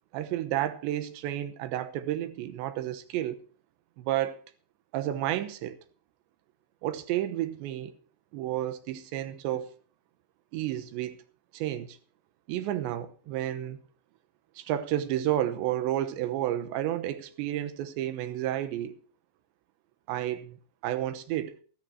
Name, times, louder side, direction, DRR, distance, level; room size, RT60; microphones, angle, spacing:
voice 1, 0.1-3.4 4.0-4.4 4.9-5.8 6.8-7.9 8.3-9.7 10.5-11.2 11.5-12.0 12.5-13.8 14.6-18.9 20.1-20.6 20.8-21.6, right 12 dB, 85° right, 3.3 m, -31 dB
13.5 x 13.0 x 4.6 m
omnidirectional pair, 5.0 m